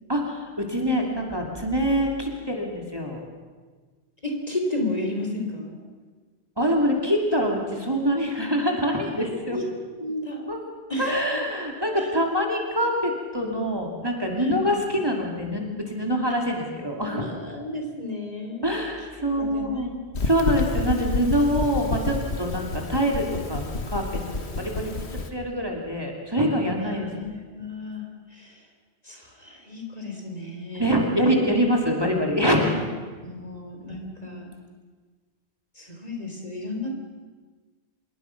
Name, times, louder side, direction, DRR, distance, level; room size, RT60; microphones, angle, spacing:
voice 1, 0.1-3.2 6.6-9.6 10.5-10.6 11.0-17.3 18.6-19.9 20.2-24.2 24.6-27.1 30.8-32.8, equal, 20° right, 0 dB, 2.8 m, -25 dB
voice 2, 4.2-5.8 9.0-9.6 10.0-10.5 10.9-11.2 11.8-12.1 14.4-14.9 16.9-18.7 19.2-20.0 26.8-28.7 29.0-31.3 33.2-34.5 35.8-37.0, left 2 dB, 35° left, 2 dB, 3.8 m, -33 dB
sound 1, 20.1-25.3, left 3 dB, 85° left, 1.8 m, -29 dB
26.0 x 22.0 x 6.0 m, 1.4 s
omnidirectional pair, 1.1 m